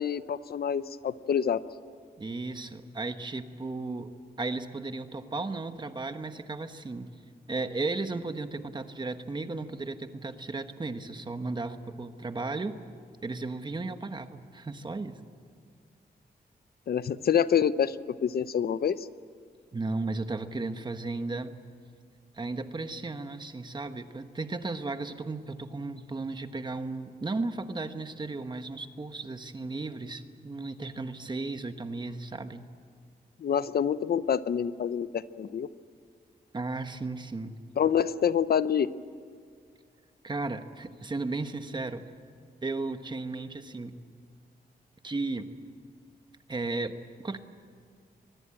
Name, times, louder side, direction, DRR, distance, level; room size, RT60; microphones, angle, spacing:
voice 1, 0.0-1.6 16.9-18.0 18.2-19.0 33.4-35.7 37.8-38.9, left 8 dB, 70° left, 15 dB, 0.7 m, -26 dB
voice 2, 2.2-7.1 7.5-12.8 13.2-15.2 19.7-21.5 22.3-32.7 36.5-37.5 40.2-42.0 42.6-44.0 45.0-45.5 46.5-46.9 47.2-47.4, right 3 dB, 25° right, 9 dB, 1.2 m, -35 dB
24.0 x 20.0 x 8.8 m, 2.1 s
wide cardioid pair, 150°, 17 cm